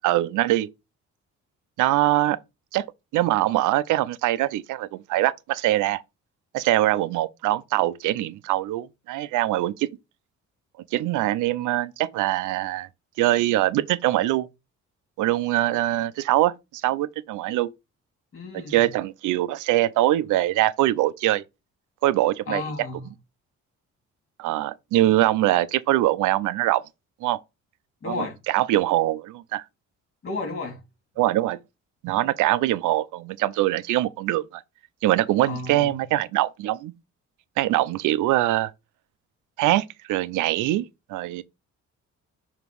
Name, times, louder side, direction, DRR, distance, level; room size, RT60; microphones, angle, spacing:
voice 1, 0.0-0.7 1.8-2.4 2.7-2.8 3.1-6.0 6.5-9.9 10.9-12.9 13.2-14.5 15.2-17.7 18.7-21.4 22.0-22.6 24.4-26.8 27.2-27.4 28.1-29.6 31.2-31.6 32.0-34.6 35.0-36.9 37.6-38.7 39.6-40.8 41.1-41.4, right 15 dB, 90° right, 0.5 m, -23 dB
voice 2, 18.3-18.9 22.5-23.1 28.0-28.4 30.2-30.8 35.5-36.0, left 3 dB, 45° left, 2.8 m, -33 dB
7.0 x 2.9 x 4.6 m
cardioid pair, 90°, 30 cm